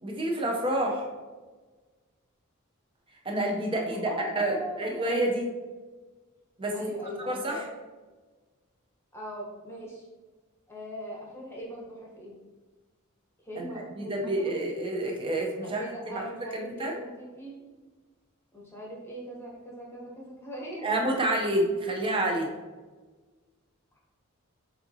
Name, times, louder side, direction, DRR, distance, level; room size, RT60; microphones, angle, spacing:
voice 1, 0.0-1.1 3.2-5.5 6.6-6.9 7.3-7.6 13.6-13.7 14.0-15.8 16.2-16.9 20.8-22.5, right 1 dB, 25° right, 1 dB, 0.7 m, -28 dB
voice 2, 4.0-5.1 6.7-7.7 9.1-10.1 10.7-12.3 13.4-14.6 15.6-17.5 18.5-20.9, equal, 10° left, -3 dB, 1.0 m, -40 dB
6.3 x 2.7 x 2.7 m, 1.3 s
head